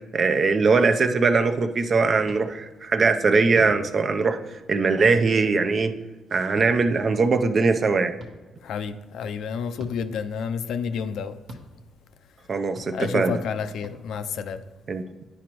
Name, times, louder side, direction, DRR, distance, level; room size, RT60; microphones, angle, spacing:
voice 1, 0.1-5.9 6.3-8.1 12.5-13.4 14.9-15.1, right 4 dB, 45° right, 0.5 m, -21 dB
sound 1, 2.2-2.4 3.5-3.8 5.0-5.2 6.6-6.7 8.2-8.3 9.8-10.0 11.5-11.6 12.7-12.9 13.8-14.0, equal, 65° right, 1.1 m, -39 dB
voice 2, 8.6-11.4 12.9-14.6, left 6 dB, 75° left, 0.4 m, -30 dB
10.0 x 5.0 x 3.0 m
cardioid pair, 90°, 0 cm